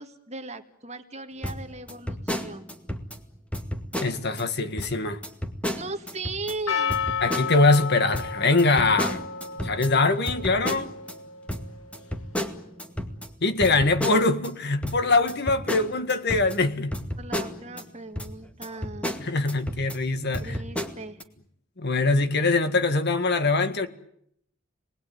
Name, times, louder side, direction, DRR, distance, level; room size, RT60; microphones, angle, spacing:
voice 1, 0.0-2.7 5.7-7.0 17.2-19.2 20.4-21.2, right 3 dB, 35° right, 7 dB, 2.0 m, -38 dB
sound 1, 1.4-3.2 3.5-4.4 4.8-4.9 5.2-6.5 6.9-7.8 8.1-11.1 11.5-14.5 14.8-17.8 18.2-18.3 18.6-20.0 20.3-21.2, equal, 5° left, 2.1 m, -32 dB
voice 2, 4.0-5.2 7.2-9.2 9.6-10.9 13.4-16.9 19.2-20.6 21.8-23.9, left 3 dB, 55° left, 9 dB, 1.9 m, -23 dB
Percussion, 6.7-11.6, left 6 dB, 85° left, 2.1 m, -32 dB
29.5 x 20.5 x 9.4 m, 0.72 s
head